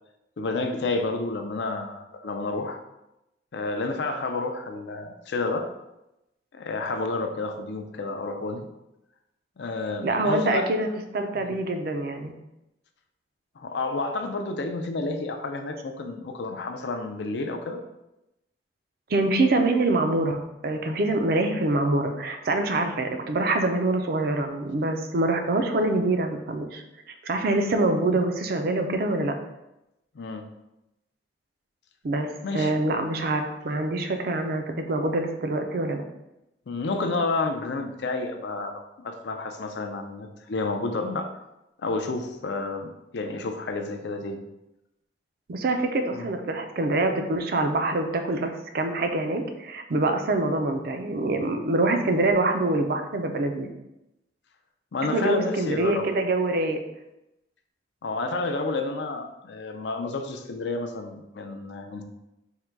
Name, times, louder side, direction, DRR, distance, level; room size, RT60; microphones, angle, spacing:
voice 1, 0.4-2.8 3.5-5.7 6.5-8.7 9.6-10.7 11.4-11.5 13.6-17.8 30.1-30.4 32.4-32.7 36.7-41.3 41.8-44.4 46.1-46.3 54.9-56.1 58.0-62.0, left 3 dB, 70° left, 5 dB, 0.5 m, -30 dB
voice 2, 10.0-10.9 11.1-12.3 19.1-26.8 27.2-29.3 32.0-36.0 45.5-53.7 55.1-56.8, right 2 dB, 55° right, 5 dB, 0.4 m, -25 dB
3.6 x 2.2 x 4.4 m, 0.91 s
head